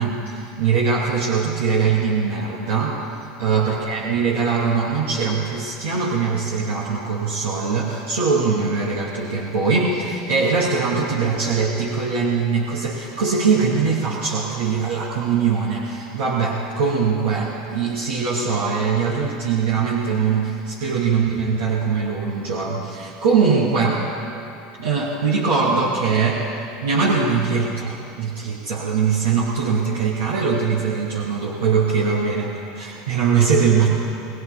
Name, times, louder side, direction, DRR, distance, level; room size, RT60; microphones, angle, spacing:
voice 1, 0.0-24.0 24.8-26.4 26.8-33.9, right 5 dB, 75° right, -5 dB, 2.7 m, -21 dB
23.5 x 21.5 x 2.2 m, 2.6 s
hypercardioid pair, 80°, 0 cm